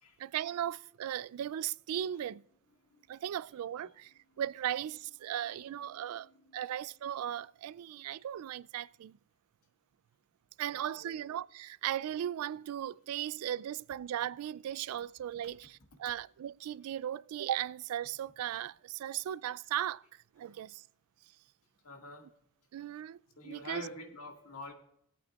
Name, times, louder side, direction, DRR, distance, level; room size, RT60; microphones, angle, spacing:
voice 1, 0.2-2.4 3.1-9.2 10.6-20.0 20.4-20.8 22.7-23.2 23.4-23.9, right 11 dB, 85° right, 0.3 m, -37 dB
voice 2, 10.7-11.2 21.8-22.3 23.4-24.7, left 2 dB, 90° left, 1.9 m, -46 dB
20.0 x 8.4 x 2.4 m
head